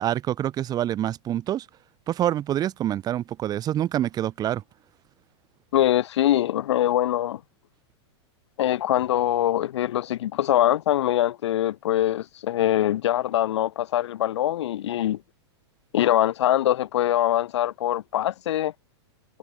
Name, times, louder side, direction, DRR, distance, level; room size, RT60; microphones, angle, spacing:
voice 1, 0.0-1.7 2.1-4.6, right 12 dB, 25° right, 2.3 m, -26 dB
voice 2, 5.7-7.4 8.6-15.2 15.9-18.7, left 12 dB, 75° left, 1.3 m, -23 dB
hypercardioid pair, 140°, 15 cm